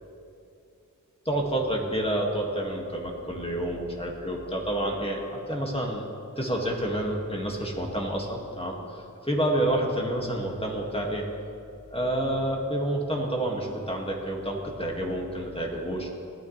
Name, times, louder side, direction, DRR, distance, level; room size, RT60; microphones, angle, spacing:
voice 1, 1.3-6.0 6.4-11.2 11.9-16.1, right 1 dB, 15° left, -1 dB, 2.2 m, -29 dB
18.0 x 12.0 x 3.4 m, 2.6 s
wide cardioid pair, 50°, 33 cm